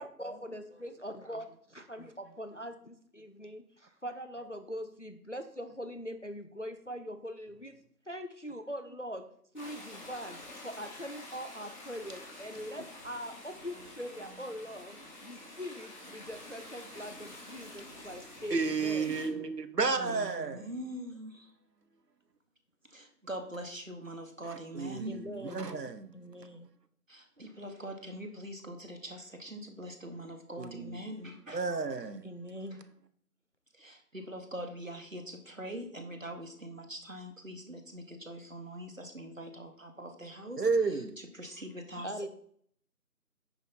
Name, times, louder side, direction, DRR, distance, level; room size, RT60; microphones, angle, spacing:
voice 1, 0.0-7.8 8.1-9.3 9.5-19.2 20.1-20.2 25.1-25.7 26.1-26.7 32.2-32.8 42.0-42.3, equal, 50° left, 0.6 m, -42 dB
sound 1, 9.6-19.3, left 1 dB, 30° left, 2.7 m, -48 dB
voice 2, 18.5-20.7 24.7-26.1 30.6-31.0 31.5-32.2 40.6-41.1, right 4 dB, 90° right, 1.1 m, -32 dB
voice 3, 20.0-21.5 22.9-25.2 27.1-31.6 33.7-42.2, right 1 dB, 55° right, 1.3 m, -43 dB
9.0 x 5.2 x 4.1 m
figure-of-eight pair, 180°, 47 cm